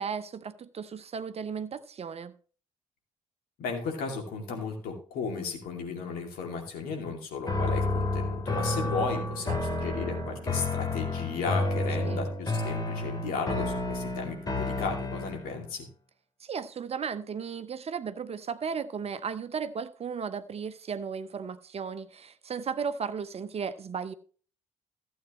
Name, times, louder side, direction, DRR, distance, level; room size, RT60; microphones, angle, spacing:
voice 1, 0.0-2.3 9.5-9.6 12.0-12.3 16.4-24.1, right 6 dB, 40° right, 0.8 m, -35 dB
voice 2, 3.6-15.9, left 5 dB, 60° left, 2.6 m, -35 dB
sound 1, 7.5-15.5, left 2 dB, 25° left, 3.0 m, -30 dB
15.0 x 8.1 x 3.1 m
figure-of-eight pair, 45°, 17 cm